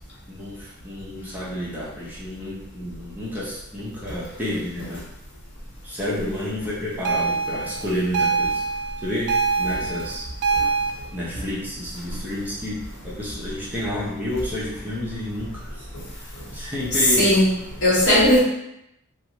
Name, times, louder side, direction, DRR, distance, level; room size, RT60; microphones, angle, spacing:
voice 1, 0.3-5.1 5.8-8.6 9.0-10.3 11.1-15.8 16.2-17.4, left 1 dB, 10° right, -8 dB, 0.7 m, -30 dB
sound 1, 7.0-10.9, right 5 dB, 50° right, 0.3 m, -24 dB
voice 2, 17.0-17.5 17.8-18.4, left 1 dB, 55° left, -7 dB, 1.3 m, -17 dB
3.3 x 2.5 x 2.9 m, 0.82 s
head